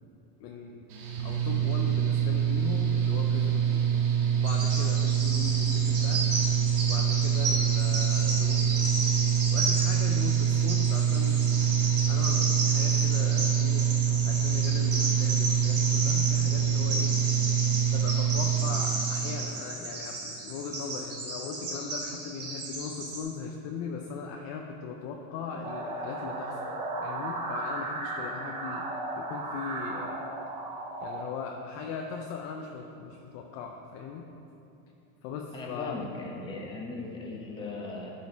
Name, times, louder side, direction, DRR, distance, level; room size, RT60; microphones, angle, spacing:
voice 1, 0.4-0.9 1.2-3.8 4.3-6.3 6.8-8.9 9.5-11.5 12.1-17.2 17.9-26.6 27.0-28.9 29.2-30.2 31.0-34.3 35.2-36.0, left 5 dB, 35° left, 2 dB, 0.5 m, -39 dB
Mechanical fan, 0.9-19.4, right 8 dB, 80° right, 1.7 m, -25 dB
Bird vocalization bird call bird song, 4.4-23.2, right 2 dB, 35° right, 1.9 m, -33 dB
sound 1, 25.6-31.2, right 2 dB, 15° right, 0.5 m, -35 dB
voice 2, 35.5-38.1, left 3 dB, 10° left, -2 dB, 0.9 m, -38 dB
11.5 x 5.2 x 4.0 m, 3.0 s
supercardioid pair, 150°, 44 cm